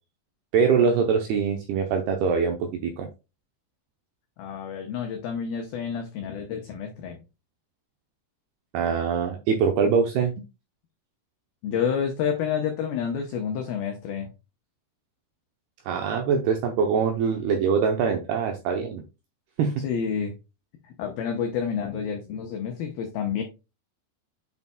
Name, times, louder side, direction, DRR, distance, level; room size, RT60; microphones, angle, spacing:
voice 1, 0.5-3.1 8.7-10.3 15.9-19.0 19.6-19.7, right 6 dB, 90° right, 2.3 m, -23 dB
voice 2, 4.4-7.2 11.6-14.3 19.8-20.3 20.8-23.4, left 7 dB, 80° left, 2.1 m, -29 dB
8.1 x 5.4 x 2.2 m
omnidirectional pair, 5.5 m